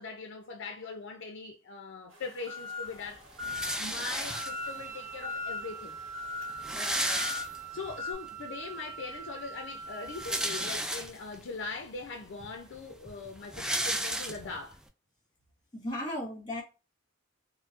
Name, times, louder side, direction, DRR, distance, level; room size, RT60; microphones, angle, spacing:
voice 1, 0.0-3.3 3.8-6.0 6.9-7.1 7.7-14.8, left 4 dB, 65° left, 0.5 m, -41 dB
sound 1, 2.1-8.1, left 4 dB, 80° right, 0.9 m, -40 dB
sound 2, 3.4-4.8 5.7-5.8 6.0-6.1 6.4-7.9 8.4-8.5 9.9-11.4 12.0-12.1 12.4-14.8, right 1 dB, 5° right, 0.3 m, -33 dB
Wind instrument woodwind instrument, 4.2-10.8, right 5 dB, 35° right, 0.7 m, -43 dB
voice 2, 6.7-7.2 15.7-16.6, left 1 dB, 20° left, 1.5 m, -37 dB
4.5 x 2.1 x 2.4 m
head